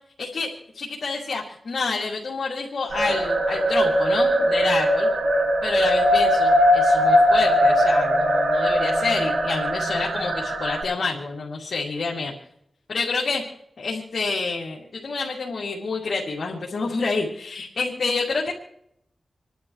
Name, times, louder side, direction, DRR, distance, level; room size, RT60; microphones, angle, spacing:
voice 1, 0.2-5.1 5.6-12.3 12.9-13.4 13.8-18.5, left 4 dB, 80° left, -3 dB, 2.5 m, -28 dB
sound 1, 2.9-10.8, equal, 80° right, 6.6 m, -20 dB
28.5 x 11.5 x 3.2 m, 0.77 s
cardioid pair, 60°, 0 cm